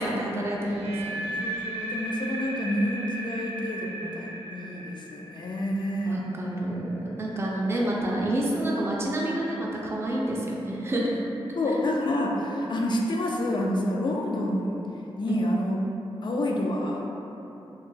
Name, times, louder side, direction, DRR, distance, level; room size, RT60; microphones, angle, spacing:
voice 1, 0.0-1.3 6.1-11.2 15.3-15.4, right 1 dB, 25° right, -3 dB, 0.4 m, -28 dB
sound 1, 0.6-6.6, right 1 dB, 75° right, 0.6 m, -36 dB
voice 2, 1.2-6.2 11.6-14.8 15.2-15.8 16.2-17.1, left 1 dB, 50° left, 0 dB, 0.4 m, -28 dB
2.9 x 2.2 x 3.1 m, 3.0 s
wide cardioid pair, 85°, 10 cm